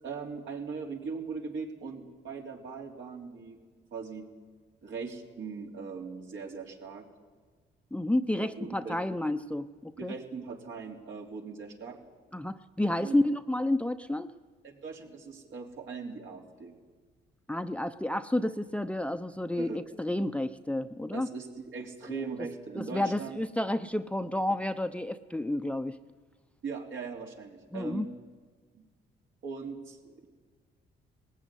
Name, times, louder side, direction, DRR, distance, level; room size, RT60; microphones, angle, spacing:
voice 1, 0.0-3.6 3.9-4.2 4.8-7.1 8.3-9.0 10.0-12.0 13.0-13.2 14.6-16.7 19.5-19.8 21.1-23.4 26.6-28.1 28.7-28.8 29.4-30.3, right 5 dB, 70° right, 1 dB, 3.5 m, -40 dB
voice 2, 7.9-10.1 12.3-14.3 17.5-21.3 22.1-22.2 22.8-26.0 27.7-28.1, left 1 dB, 5° left, 10 dB, 0.7 m, -30 dB
19.5 x 15.5 x 10.0 m, 1.5 s
cardioid pair, 90°, 20 cm